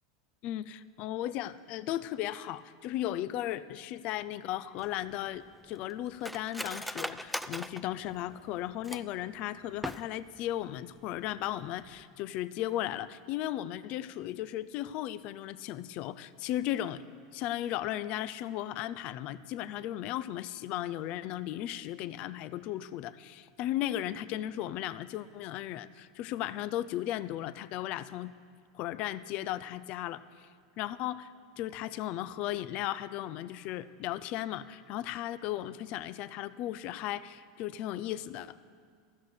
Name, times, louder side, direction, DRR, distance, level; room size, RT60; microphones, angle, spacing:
voice 1, 0.4-17.0 17.3-28.3 28.7-30.5 30.8-31.3 31.6-38.6, left 13 dB, 55° left, 16 dB, 0.5 m, -36 dB
Cutlery silverware, 4.8-9.2 9.7-10.4 10.7-10.8 11.2-11.5 11.8-12.0, equal, ahead, 0.4 m, -40 dB
15.0 x 6.4 x 8.4 m, 2.1 s
supercardioid pair, 110°, 2 cm